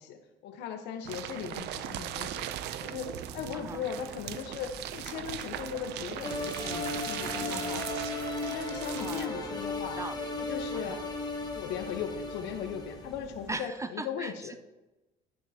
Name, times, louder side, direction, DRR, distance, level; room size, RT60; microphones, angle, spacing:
voice 1, 0.0-2.4 2.8-7.8 8.4-10.0 10.4-11.0 11.5-14.5, left 7 dB, 90° left, 6 dB, 1.0 m, -38 dB
sound 1, 1.0-9.3, right 12 dB, 80° right, 0.5 m, -39 dB
sound 2, 1.8-13.5, left 1 dB, ahead, 2.3 m, -51 dB
voice 2, 3.5-3.8 7.5-7.9 9.0-10.4 10.7-11.1 13.5-14.6, right 3 dB, 15° right, 11 dB, 0.4 m, -40 dB
sound 3, 6.2-13.1, left 3 dB, 25° left, 1.3 m, -36 dB
11.0 x 9.4 x 2.8 m, 1.0 s
cardioid pair, 110°, 17 cm